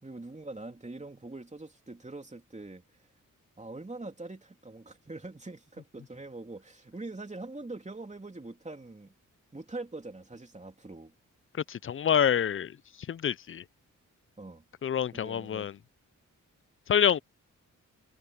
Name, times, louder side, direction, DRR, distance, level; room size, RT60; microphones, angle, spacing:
voice 1, 0.0-2.8 3.6-9.1 9.5-11.1 14.4-14.6 15.1-15.7, right 2 dB, 20° right, 3.2 m, -43 dB
voice 2, 11.7-12.8 13.1-13.6 14.8-15.7 16.9-17.2, left 8 dB, 40° left, 0.4 m, -26 dB
cardioid pair, 70°, 33 cm